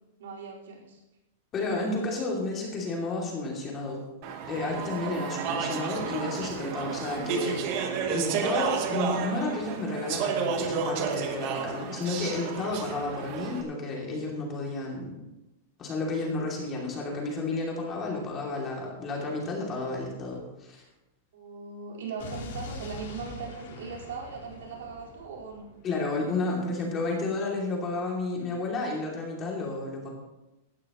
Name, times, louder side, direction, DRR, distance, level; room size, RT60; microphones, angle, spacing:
voice 1, 0.2-1.0 21.3-25.7, right 5 dB, 85° right, -3 dB, 4.5 m, -39 dB
voice 2, 1.5-4.0 4.5-7.7 8.0-15.2 15.8-20.8 25.8-30.1, left 2 dB, 20° left, -2 dB, 2.7 m, -31 dB
Speech / Chatter, 4.2-13.6, right 6 dB, 35° right, 1.2 m, -31 dB
Explosion, 22.2-26.2, left 3 dB, 60° left, 3.4 m, -43 dB
17.5 x 12.0 x 3.1 m, 0.98 s
supercardioid pair, 175°, 0 cm